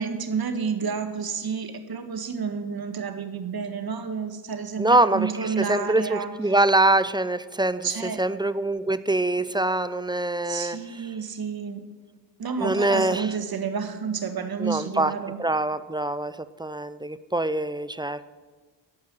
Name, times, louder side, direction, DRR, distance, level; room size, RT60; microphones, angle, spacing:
voice 1, 0.0-6.3 7.8-8.2 10.4-11.8 12.4-15.4, right 6 dB, 55° right, 9 dB, 1.6 m, -30 dB
voice 2, 4.8-10.8 12.6-13.3 14.6-15.1 15.4-18.3, right 2 dB, 10° right, 14 dB, 0.6 m, -24 dB
14.5 x 5.6 x 8.9 m, 1.4 s
supercardioid pair, 45°, 45 cm